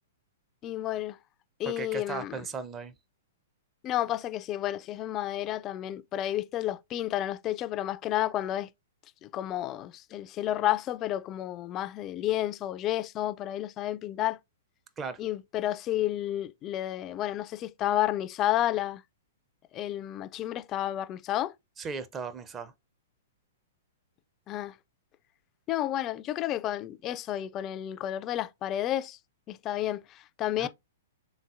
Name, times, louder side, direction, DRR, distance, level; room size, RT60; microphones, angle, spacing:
voice 1, 0.6-1.2 1.6-2.5 3.8-8.7 9.2-14.4 15.2-19.0 19.7-21.5 24.5-24.7 25.7-29.2 29.5-30.7, left 13 dB, 30° left, 0.3 m, -31 dB
voice 2, 1.7-2.9 15.0-15.2 21.8-22.7 30.6-30.7, right 5 dB, 20° right, 0.6 m, -37 dB
4.0 x 3.7 x 2.4 m
figure-of-eight pair, 110°, 0 cm